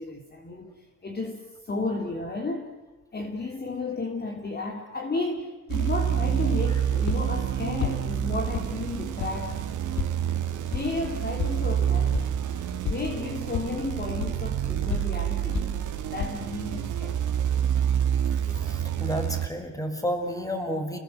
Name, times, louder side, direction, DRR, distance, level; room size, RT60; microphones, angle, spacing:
voice 1, 0.0-2.7 3.1-10.0 10.7-12.3 12.8-15.7 16.1-17.2, left 3 dB, 30° left, 2 dB, 3.3 m, -33 dB
sound 1, 5.7-19.5, right 9 dB, 75° right, 2.4 m, -28 dB
sound 2, 5.9-16.6, left 5 dB, 65° left, 2.5 m, -36 dB
voice 2, 18.6-21.0, equal, 10° left, 5 dB, 5.4 m, -31 dB
30.0 x 20.5 x 8.1 m, 1.1 s
cardioid pair, 90°, 30 cm